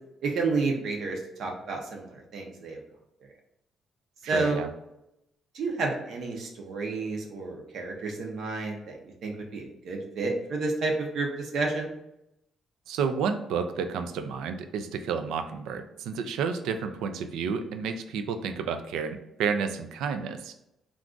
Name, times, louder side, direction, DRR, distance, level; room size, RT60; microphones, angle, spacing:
voice 1, 0.2-2.8 4.3-4.6 5.5-9.0 9.2-11.9, right 3 dB, 70° right, 1 dB, 0.7 m, -30 dB
voice 2, 4.3-4.7 12.9-20.5, right 6 dB, 90° right, 8 dB, 0.3 m, -31 dB
2.4 x 2.3 x 3.7 m, 0.85 s
cardioid pair, 90°, 0 cm